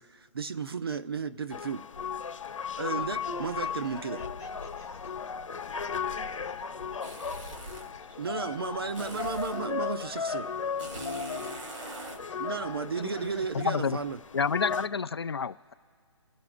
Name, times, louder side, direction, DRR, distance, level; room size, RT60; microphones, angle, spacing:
voice 1, 0.0-1.9 2.8-4.2 8.2-10.5 12.4-14.2, right 5 dB, 50° right, 0.6 m, -34 dB
sound 1, 1.5-14.9, left 6 dB, 85° left, 0.9 m, -36 dB
voice 2, 2.7-8.6 9.0-12.2 13.1-13.9, left 2 dB, 5° right, 1.3 m, -52 dB
sound 2, 7.0-8.0 8.9-9.7 10.8-12.2, equal, 75° right, 2.3 m, -41 dB
voice 3, 13.5-14.0 14.3-15.7, left 5 dB, 55° left, 0.4 m, -29 dB
29.5 x 12.0 x 2.5 m
hypercardioid pair, 180°, 16 cm